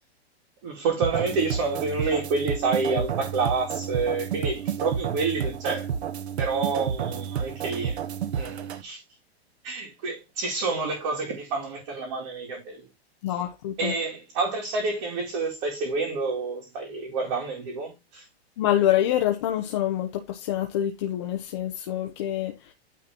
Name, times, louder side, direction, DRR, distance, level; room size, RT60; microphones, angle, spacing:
voice 1, 0.6-5.9 6.4-8.0 8.3-9.0 9.6-12.9 13.8-18.3, right 4 dB, 30° right, 2.2 m, -28 dB
sound 1, 1.0-8.8, right 8 dB, 80° right, 1.2 m, -30 dB
voice 2, 13.2-13.9 18.6-22.7, left 12 dB, 25° left, 0.7 m, -26 dB
9.3 x 3.9 x 4.3 m
supercardioid pair, 180°, 32 cm